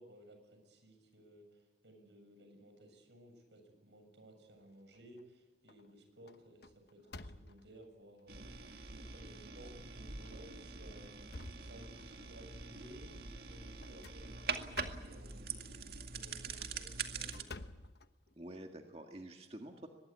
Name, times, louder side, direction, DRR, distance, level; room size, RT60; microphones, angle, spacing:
voice 1, 0.0-17.6, right 1 dB, 80° right, 6 dB, 7.3 m, -58 dB
sound 1, 4.6-5.2 5.7-5.9 6.3-7.9 8.5-8.6 9.1-9.2 10.1-10.4 10.8-12.3 13.8-15.3 16.4-18.6, left 2 dB, 65° left, 1.1 m, -52 dB
sound 2, 8.3-17.4, right 5 dB, 60° right, 2.1 m, -44 dB
voice 2, 18.4-19.9, right 1 dB, 35° right, 3 dB, 1.8 m, -49 dB
23.5 x 22.0 x 8.6 m, 1.2 s
head